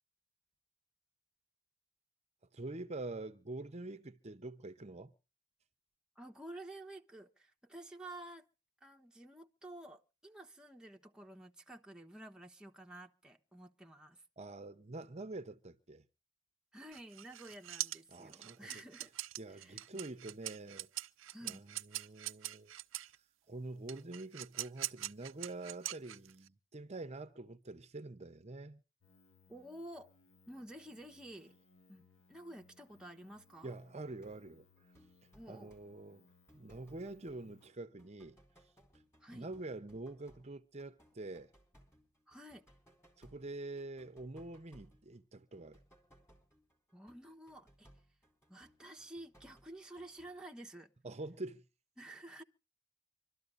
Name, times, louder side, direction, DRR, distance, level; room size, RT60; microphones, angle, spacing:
voice 1, 2.5-5.1 14.4-16.0 18.1-18.8 19.4-20.9 21.4-22.7 23.1-28.8 33.6-34.7 35.5-36.3 36.5-38.4 39.3-41.5 43.2-45.8 51.0-51.6, right 2 dB, 35° right, 0.8 m, -46 dB
voice 2, 6.2-8.4 8.8-14.2 16.7-19.1 19.5-20.0 21.3-21.6 29.5-30.1 30.5-31.5 31.9-33.7 35.3-35.7 39.2-39.5 42.3-42.6 46.9-47.9 48.5-50.9 52.0-52.4, right 1 dB, 5° right, 1.1 m, -51 dB
sound 1, 16.9-23.2 23.9-26.5, right 15 dB, 75° right, 0.6 m, -43 dB
sound 2, 29.0-37.7, left 3 dB, 75° left, 1.8 m, -67 dB
sound 3, 34.2-34.4 34.8-37.7 38.0-50.4, equal, 15° left, 4.1 m, -65 dB
26.0 x 13.0 x 2.6 m
head